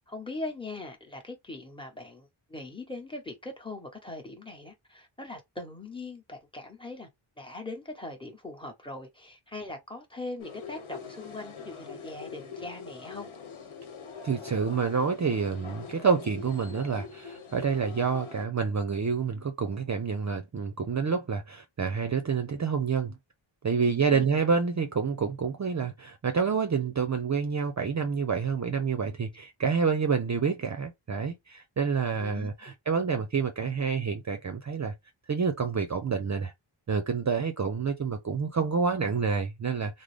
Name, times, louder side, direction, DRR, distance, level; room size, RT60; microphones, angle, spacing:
voice 1, 0.1-7.1 7.4-13.3 23.8-24.2 32.2-32.7, left 2 dB, 10° left, 1.0 m, -41 dB
sound 1, 10.4-18.5, left 5 dB, 80° left, 1.0 m, -43 dB
voice 2, 14.2-23.1 23.6-34.9 35.3-36.5 36.9-40.0, right 5 dB, 35° right, 0.5 m, -28 dB
3.7 x 2.0 x 3.3 m
wide cardioid pair, 105°, 48 cm